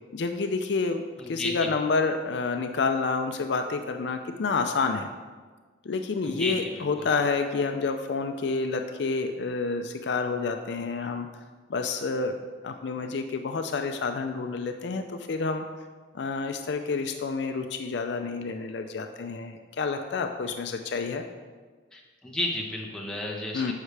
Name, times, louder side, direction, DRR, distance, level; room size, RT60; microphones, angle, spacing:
voice 1, 0.1-5.1 5.9-11.3 11.7-12.3 12.6-15.7 16.1-21.2 23.5-23.7, left 4 dB, 65° left, 6 dB, 0.4 m, -29 dB
voice 2, 1.2-1.7 6.2-7.1 21.9-23.7, left 1 dB, 5° left, -3 dB, 1.0 m, -33 dB
9.5 x 6.5 x 3.3 m, 1.4 s
head